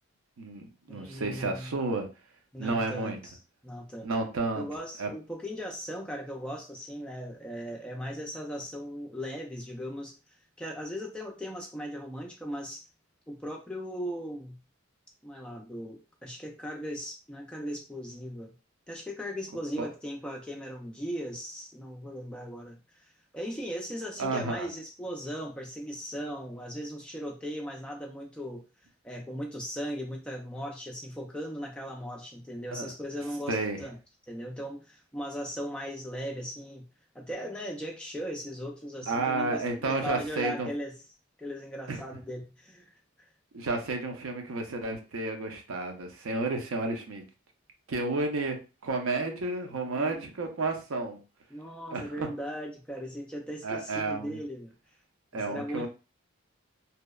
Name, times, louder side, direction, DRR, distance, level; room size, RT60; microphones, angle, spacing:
voice 1, 0.4-2.1 2.6-3.2 4.0-4.7 5.0-5.1 19.8-19.9 24.2-24.7 32.7-32.9 33.5-33.8 39.1-40.7 41.9-42.0 43.5-47.2 47.9-51.2 51.9-52.3 53.6-54.4 55.3-55.9, right 3 dB, 80° right, 0.5 m, -31 dB
voice 2, 0.9-1.7 2.5-3.3 3.6-4.1 4.5-10.2 10.6-12.9 13.3-14.6 15.2-18.5 18.9-23.1 23.3-28.6 29.0-34.0 34.3-36.8 37.1-40.9 41.4-43.3 49.2-50.2 51.5-54.7 55.3-55.9, equal, 5° left, 0.3 m, -38 dB
2.7 x 2.0 x 2.2 m
head